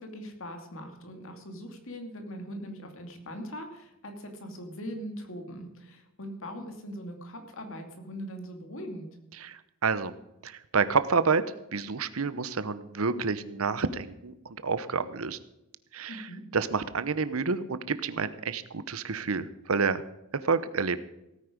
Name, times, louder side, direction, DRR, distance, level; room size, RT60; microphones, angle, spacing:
voice 1, 0.0-9.1 16.1-16.4, equal, 65° left, 5 dB, 2.5 m, -41 dB
voice 2, 9.4-10.1 10.4-11.4 11.7-15.4 15.9-16.3 16.5-20.0 20.3-21.0, right 4 dB, 70° right, 14 dB, 0.9 m, -29 dB
17.0 x 9.4 x 5.2 m, 0.90 s
head